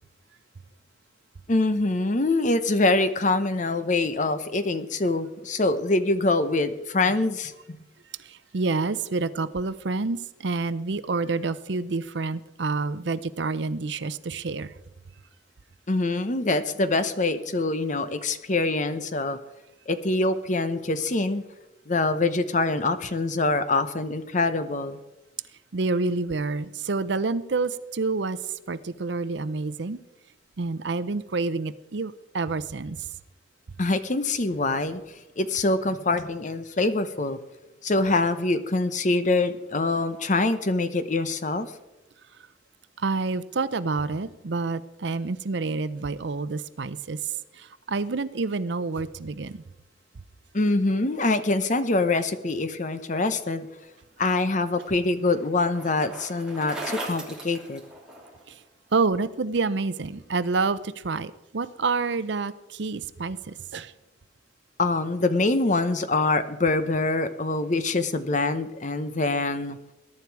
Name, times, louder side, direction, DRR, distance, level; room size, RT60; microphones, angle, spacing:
voice 1, 1.5-7.8 15.9-19.4 19.9-21.4 21.9-25.0 33.8-35.0 35.4-37.4 37.8-41.7 50.5-53.7 54.2-57.8 64.8-69.8, left 2 dB, 40° left, 11 dB, 0.8 m, -24 dB
voice 2, 8.3-14.7 25.7-28.4 28.7-30.0 30.6-33.0 43.0-47.2 47.6-49.6 58.9-63.9, right 3 dB, 65° right, 15 dB, 0.6 m, -28 dB
Bicycle, 54.1-58.5, right 2 dB, 5° right, 3.1 m, -39 dB
21.5 x 11.0 x 4.7 m, 1.0 s
head